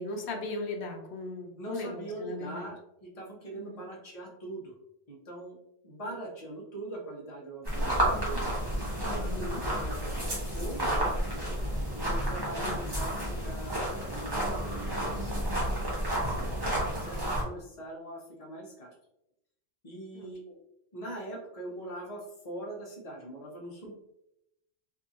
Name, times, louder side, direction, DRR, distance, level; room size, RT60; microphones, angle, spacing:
voice 1, 0.0-2.7 3.5-3.9 9.1-9.6 12.6-12.8 20.1-20.6, left 2 dB, 80° left, 3 dB, 0.9 m, -38 dB
voice 2, 1.6-4.8 5.1-5.6 5.8-8.4 9.2-11.1 11.9-15.7 16.1-16.6 16.8-18.9 19.8-20.4 20.9-23.9, right 1 dB, 35° left, -3 dB, 0.8 m, -42 dB
sound 1, 7.6-17.4, right 1 dB, 25° right, 0.8 m, -31 dB
2.7 x 2.6 x 2.4 m, 0.83 s
omnidirectional pair, 1.1 m